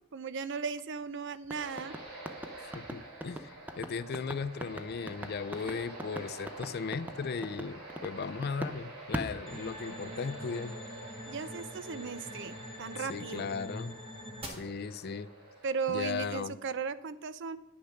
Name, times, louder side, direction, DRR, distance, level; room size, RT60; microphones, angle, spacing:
voice 1, 0.1-1.9 11.3-13.5 15.6-17.6, right 5 dB, 55° right, 15 dB, 0.5 m, -36 dB
sound 1, 1.4-8.8 9.1-10.2, equal, 10° right, 0.5 m, -40 dB
sound 2, 1.5-16.1, right 2 dB, 90° right, 3.4 m, -48 dB
voice 2, 2.7-10.8 13.1-13.9 14.5-15.3 15.9-16.6, left 5 dB, 45° left, 17 dB, 0.4 m, -37 dB
sound 3, 9.5-14.5, left 1 dB, 25° right, 1.6 m, -45 dB
9.7 x 6.7 x 6.4 m, 0.95 s
head